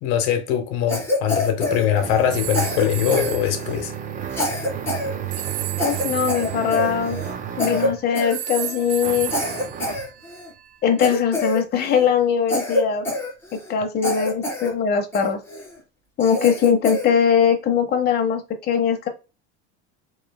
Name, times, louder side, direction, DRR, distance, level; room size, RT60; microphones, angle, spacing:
voice 1, 0.0-3.9, left 9 dB, 65° left, 0.9 m, -22 dB
Cough, 0.9-2.3 2.5-3.8 4.3-5.1 5.4-5.5 5.8-7.3 7.6-7.9 8.1-8.8 9.3-10.5 11.0-12.1 12.5-13.7 14.0-14.7 15.1-15.7 16.2-17.1, left 1 dB, 5° left, 2.2 m, -26 dB
sound 1, 0.9-8.1 9.0-10.1, right 9 dB, 25° right, 0.5 m, -32 dB
sound 2, 2.3-3.6 5.3-7.8 8.3-10.6, right 11 dB, 90° right, 0.6 m, -33 dB
voice 2, 5.8-7.2 7.6-9.3 10.8-13.0 13.7-15.4 16.2-19.1, left 7 dB, 30° left, 0.8 m, -21 dB
4.5 x 3.1 x 2.2 m
supercardioid pair, 120°, 32 cm